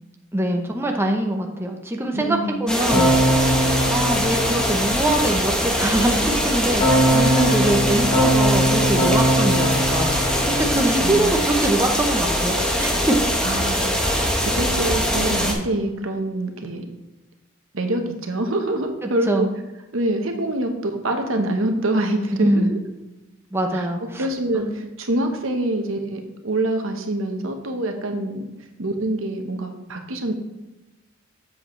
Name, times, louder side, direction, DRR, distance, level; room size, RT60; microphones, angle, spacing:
voice 1, 0.3-3.3 3.9-7.0 7.3-13.2 19.0-19.5 22.3-22.8 23.5-24.3 24.5-24.7, right 1 dB, 10° right, 2 dB, 0.8 m, -23 dB
voice 2, 2.1-2.7 7.1-7.7 11.0-11.4 13.4-14.0 14.5-16.8 17.7-19.5 19.9-22.8 23.7-23.9 24.1-28.4 28.8-30.3, right 1 dB, 75° right, 5 dB, 1.1 m, -25 dB
sound 1, 2.7-15.5, equal, 5° left, 1.2 m, -22 dB
Keyboard (musical), 2.9-5.2 6.8-11.1, right 1 dB, 35° left, 2.9 m, -21 dB
sound 2, 5.8-10.7, left 3 dB, 60° left, 1.1 m, -33 dB
7.6 x 7.6 x 3.2 m, 1.0 s
head